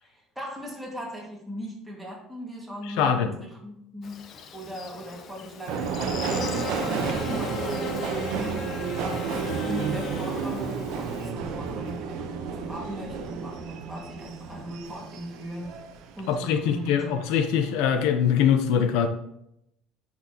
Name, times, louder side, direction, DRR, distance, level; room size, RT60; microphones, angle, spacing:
voice 1, 0.0-8.7 9.0-15.7 16.2-17.1, equal, 5° right, -3 dB, 2.1 m, -38 dB
voice 2, 2.8-3.3 16.3-19.1, left 8 dB, 75° left, 7 dB, 0.8 m, -23 dB
Buzz, 4.0-11.3, left 6 dB, 35° left, 0.7 m, -38 dB
Subway metro underground, 5.7-16.4 16.8-17.5 17.7-17.9, right 5 dB, 60° right, 0.9 m, -31 dB
10.0 x 6.0 x 3.0 m, 0.77 s
cardioid pair, 170°, 0 cm